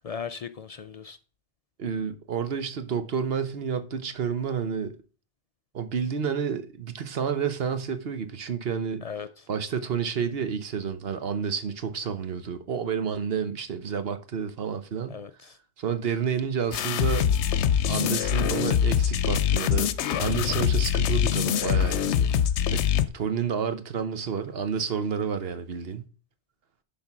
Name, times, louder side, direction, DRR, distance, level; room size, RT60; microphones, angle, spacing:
voice 1, 0.0-1.2 9.0-9.5 15.1-15.6, left 6 dB, 65° left, 0.3 m, -38 dB
voice 2, 1.8-5.0 5.7-9.0 9.5-15.2 15.8-17.3 17.9-19.9 20.2-22.3 22.7-22.8 23.1-26.0, right 7 dB, 65° right, 1.1 m, -30 dB
sound 1, 16.7-23.1, left 9 dB, 85° left, 0.9 m, -24 dB
10.5 x 3.8 x 5.9 m
omnidirectional pair, 1.1 m